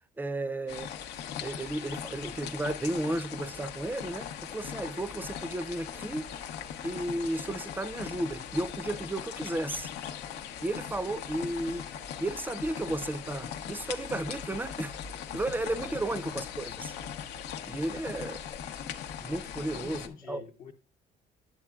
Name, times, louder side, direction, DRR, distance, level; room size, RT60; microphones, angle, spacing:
voice 1, 0.2-6.3 6.8-9.9 10.6-11.9 12.2-15.0 15.3-16.9 17.6-18.5 19.2-20.4, right 1 dB, 10° right, 0.4 m, -34 dB
sound 1, 0.7-20.1, left 8 dB, 80° left, 0.8 m, -40 dB
voice 2, 19.6-20.7, left 6 dB, 50° left, 0.8 m, -47 dB
8.6 x 7.9 x 2.3 m
cardioid pair, 110°, 17 cm